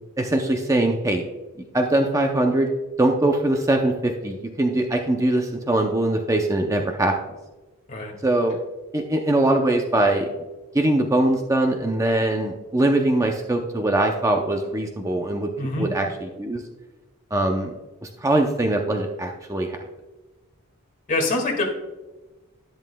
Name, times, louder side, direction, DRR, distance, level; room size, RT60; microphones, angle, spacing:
voice 1, 0.2-1.2 1.7-2.7 3.0-7.2 8.2-8.6 8.9-10.3 10.7-15.5 15.8-16.6 17.3-17.7 18.0-19.8, right 1 dB, 15° right, 3 dB, 0.5 m, -22 dB
voice 2, 15.6-15.9 21.1-21.6, left 2 dB, 40° left, 0 dB, 1.9 m, -24 dB
11.0 x 10.5 x 2.2 m, 1.1 s
head